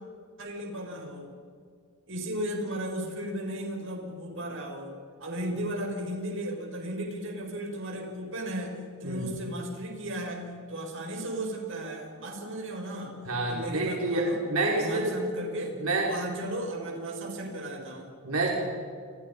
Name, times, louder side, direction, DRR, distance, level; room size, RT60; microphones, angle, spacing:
voice 1, 0.4-1.3 2.1-4.9 5.2-13.1 13.5-14.4 14.7-15.8 16.0-18.1, right 1 dB, 60° right, 1 dB, 6.5 m, -35 dB
voice 2, 13.3-15.2 15.8-16.1 18.2-18.5, right 2 dB, 80° right, -2 dB, 5.2 m, -28 dB
30.0 x 28.0 x 5.6 m, 2.2 s
head